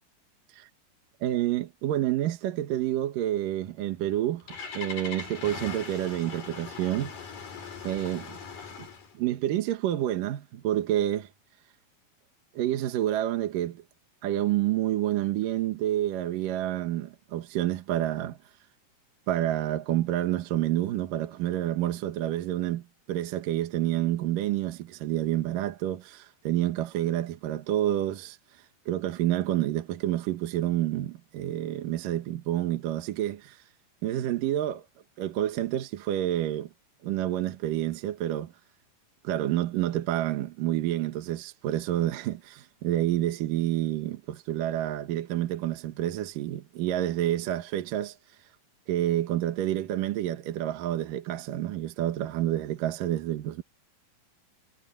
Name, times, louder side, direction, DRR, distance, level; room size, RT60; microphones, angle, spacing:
voice 1, 1.2-4.4 4.7-7.1 7.8-8.4 8.8-8.9 9.1-11.3 12.5-13.8 14.2-18.4 19.3-28.4 28.9-33.6 34.0-34.8 35.2-36.7 37.0-38.5 39.2-48.2 48.9-53.6, right 13 dB, 70° right, 2.9 m, -28 dB
Engine starting, 4.0-9.1, left 5 dB, 65° left, 6.5 m, -40 dB
omnidirectional pair, 4.2 m